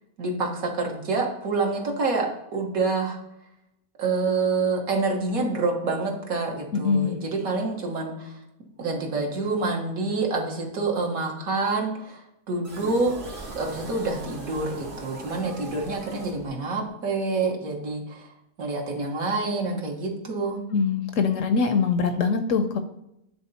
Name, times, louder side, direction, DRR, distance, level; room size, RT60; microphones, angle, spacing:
voice 1, 0.2-3.2 4.0-8.4 8.8-13.1 13.5-18.3 18.6-20.6, right 3 dB, 65° right, 1 dB, 1.6 m, -27 dB
voice 2, 6.7-7.2 20.7-22.8, left 5 dB, 65° left, 8 dB, 0.8 m, -23 dB
sound 1, 12.6-16.9, right 3 dB, 80° right, 2.2 m, -40 dB
9.1 x 3.8 x 4.0 m, 0.83 s
omnidirectional pair, 1.6 m